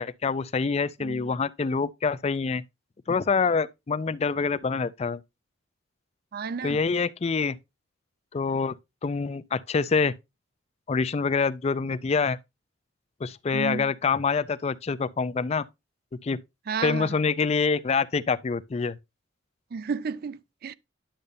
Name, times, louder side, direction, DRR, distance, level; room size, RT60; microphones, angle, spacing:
voice 1, 0.0-2.6 3.1-5.2 6.6-7.6 8.3-8.8 9.0-10.1 10.9-12.4 13.2-15.6 16.2-16.4 16.8-19.0, left 5 dB, 35° left, 0.4 m, -26 dB
voice 2, 6.3-6.8 13.5-13.9 16.7-17.1 19.7-20.7, right 5 dB, 50° right, 0.4 m, -32 dB
10.0 x 6.7 x 2.6 m
head